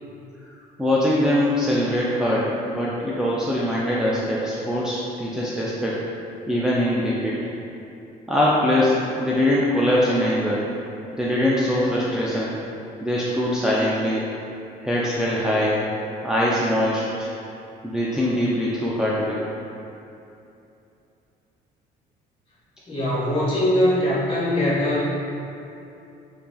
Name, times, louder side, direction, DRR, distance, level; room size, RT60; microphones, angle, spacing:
voice 1, 0.8-6.1 6.5-7.4 8.3-10.7 11.1-12.6 13.0-14.3 14.8-15.8 16.2-17.3 17.8-19.4, left 1 dB, 5° right, -7 dB, 0.3 m, -22 dB
voice 2, 22.9-25.1, left 1 dB, 35° left, -8 dB, 1.4 m, -21 dB
5.4 x 2.5 x 2.3 m, 2.8 s
cardioid pair, 110°, 17 cm